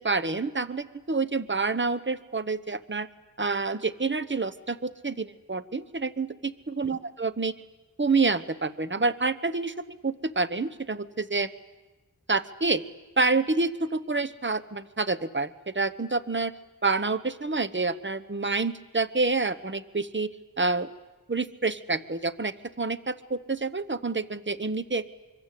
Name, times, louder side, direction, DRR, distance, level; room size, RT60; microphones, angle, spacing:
voice 1, 0.0-3.1 3.4-7.5 8.0-9.7 10.0-11.5 12.3-12.8 13.2-16.5 16.8-20.3 20.6-20.9 21.3-25.1, right 3 dB, 30° right, 11 dB, 1.1 m, -28 dB
25.5 x 24.0 x 8.5 m, 1.2 s
wide cardioid pair, 40°, 36 cm